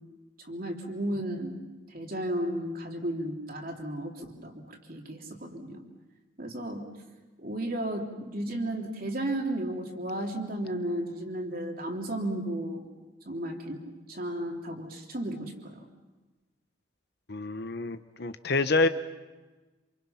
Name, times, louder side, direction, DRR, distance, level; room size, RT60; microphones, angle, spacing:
voice 1, 0.4-1.6 1.9-5.8 6.4-6.9 7.4-12.9 13.2-13.8 14.1-15.8, right 1 dB, 45° right, 2 dB, 3.3 m, -34 dB
voice 2, 17.3-18.9, left 3 dB, 50° left, 11 dB, 1.0 m, -27 dB
28.0 x 27.5 x 5.8 m, 1.2 s
head